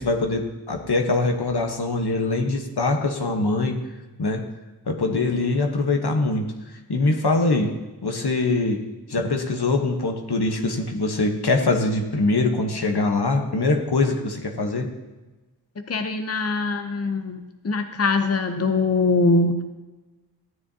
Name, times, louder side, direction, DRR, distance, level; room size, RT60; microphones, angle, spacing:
voice 1, 0.0-3.8 4.2-4.5 4.9-6.5 6.9-7.8 8.0-8.8 9.1-14.9, left 2 dB, 80° left, 3 dB, 1.1 m, -23 dB
voice 2, 15.9-19.6, left 3 dB, 40° left, 7 dB, 0.7 m, -22 dB
14.0 x 9.8 x 2.8 m, 1.2 s
wide cardioid pair, 60°, 39 cm